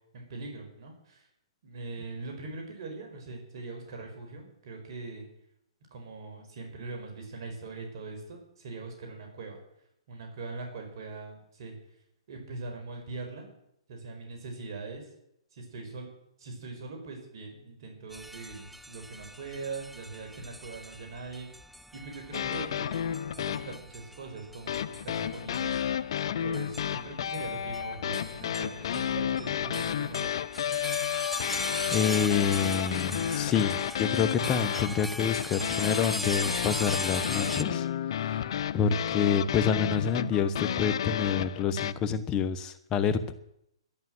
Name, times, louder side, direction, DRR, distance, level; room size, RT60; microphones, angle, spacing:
voice 1, 0.1-1.3 1.6-5.3 5.9-9.6 10.1-11.8 12.3-13.5 13.9-15.1 15.5-16.1 16.4-21.5 21.9-23.0 23.4-25.8 26.4-30.3, right 3 dB, 55° right, 3 dB, 5.2 m, -41 dB
sound 1, 18.1-37.6, equal, ahead, 0.5 m, -40 dB
sound 2, 22.3-23.8 24.7-41.9, left 9 dB, 60° left, 0.6 m, -31 dB
voice 2, 31.9-37.9 38.2-38.4 38.7-43.3, left 7 dB, 20° left, 11 dB, 1.1 m, -28 dB
12.0 x 11.0 x 7.8 m, 0.78 s
hypercardioid pair, 145°, 3 cm